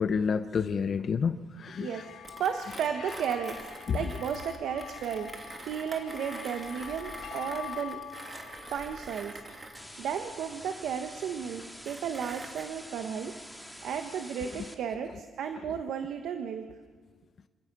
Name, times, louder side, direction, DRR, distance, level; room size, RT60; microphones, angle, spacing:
voice 1, 0.0-2.0 3.9-4.0, left 6 dB, 50° left, 10 dB, 0.8 m, -29 dB
sound 1, 1.7-10.3, left 10 dB, 70° left, 1.2 m, -46 dB
Mechanisms, 2.2-12.6, right 2 dB, 25° right, 2.6 m, -46 dB
voice 2, 2.4-3.6 3.9-8.0 8.7-9.3 10.0-13.3 13.8-16.6, right 7 dB, 75° right, 6 dB, 1.3 m, -34 dB
sound 2, 9.7-14.7, equal, ahead, 2.3 m, -47 dB
26.5 x 16.5 x 6.2 m, 1.5 s
cardioid pair, 90°, 0 cm